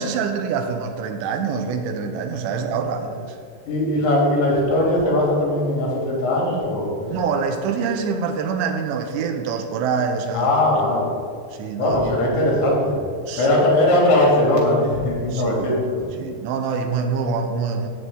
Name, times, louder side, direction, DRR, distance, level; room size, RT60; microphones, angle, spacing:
voice 1, 0.0-3.4 7.1-10.5 11.6-12.1 13.3-13.6 15.3-15.8 16.2-17.9, right 5 dB, 85° right, 6 dB, 2.9 m, -25 dB
voice 2, 3.6-7.1 10.3-11.1 11.8-13.0 13.4-16.0, left 1 dB, 75° left, -3 dB, 5.2 m, -19 dB
15.5 x 8.6 x 3.9 m, 2.1 s
omnidirectional pair, 5.2 m